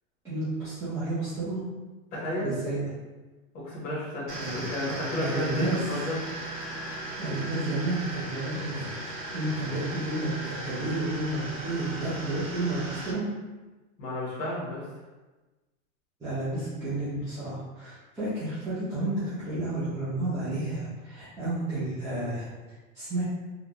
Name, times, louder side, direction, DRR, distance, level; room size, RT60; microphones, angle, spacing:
voice 1, 0.2-1.6 2.4-2.9 4.4-4.7 5.2-5.8 7.2-13.3 16.2-22.5 22.9-23.2, right 2 dB, 10° right, -15 dB, 0.7 m, -31 dB
voice 2, 2.1-2.5 3.5-6.1 14.0-14.8, left 1 dB, 20° left, -8 dB, 1.0 m, -32 dB
sound 1, 4.3-13.1, right 2 dB, 35° right, 0.9 m, -37 dB
3.8 x 2.4 x 2.9 m, 1.2 s
supercardioid pair, 170°, 40 cm